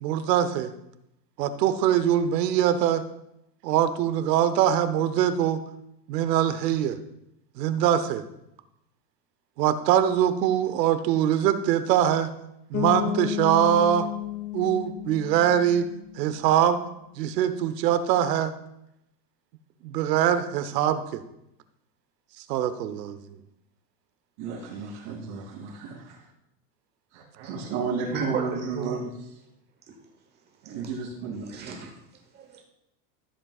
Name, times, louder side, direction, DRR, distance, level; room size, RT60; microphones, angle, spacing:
voice 1, 0.0-0.7 1.4-3.0 3.6-5.6 6.1-7.0 7.6-8.2 9.6-12.3 12.7-14.1 14.5-15.9 16.2-16.8 17.2-18.5 19.8-21.2 22.5-23.2 25.1-25.2, right 10 dB, 75° right, 11 dB, 1.0 m, -23 dB
Bass guitar, 12.7-16.5, left 13 dB, 25° left, 1.7 m, -32 dB
voice 2, 24.4-26.2 27.1-29.1 30.6-31.5, right 5 dB, 50° right, -7 dB, 2.5 m, -33 dB
voice 3, 28.1-28.9 29.9-30.0 31.5-32.0 32.3-32.6, right 5 dB, 20° right, 2 dB, 1.1 m, -34 dB
14.0 x 7.5 x 2.4 m, 0.81 s
supercardioid pair, 170°, 50 cm